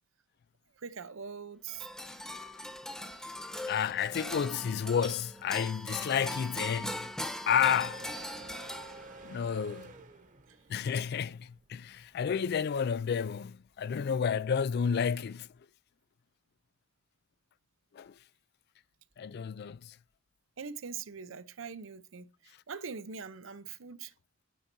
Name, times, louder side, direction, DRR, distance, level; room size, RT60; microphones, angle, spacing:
voice 1, 0.8-1.9 10.5-10.6 20.6-24.1, right 6 dB, 75° right, 0.7 m, -43 dB
sound 1, 1.7-9.4, left 1 dB, 5° left, 0.9 m, -40 dB
voice 2, 3.7-7.1 7.5-8.1 9.2-9.9 10.7-15.5 17.9-18.1 19.2-20.0, left 7 dB, 55° left, 0.4 m, -31 dB
sound 2, 7.5-14.1, right 2 dB, 40° right, 1.1 m, -51 dB
9.3 x 3.9 x 4.4 m
head